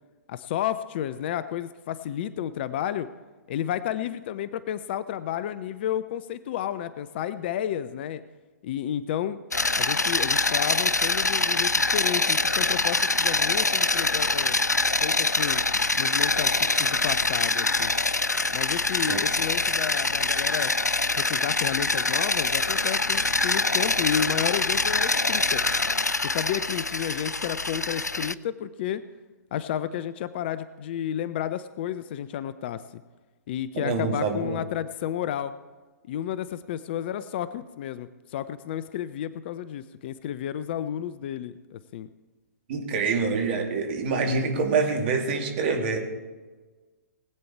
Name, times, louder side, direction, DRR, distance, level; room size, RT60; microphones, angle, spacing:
voice 1, 0.3-3.1 3.5-8.2 8.6-9.4 9.8-14.6 15.0-15.6 16.0-17.9 18.5-20.7 21.2-25.6 26.2-29.0 29.5-33.0 33.5-35.5 36.1-42.1, left 10 dB, 40° left, 14 dB, 0.5 m, -31 dB
sound 1, 9.5-28.3, left 3 dB, 90° left, 0.4 m, -24 dB
voice 2, 33.7-34.6 42.7-46.0, right 4 dB, 40° right, 3 dB, 2.4 m, -26 dB
19.5 x 8.6 x 4.5 m, 1.3 s
figure-of-eight pair, 115°, 9 cm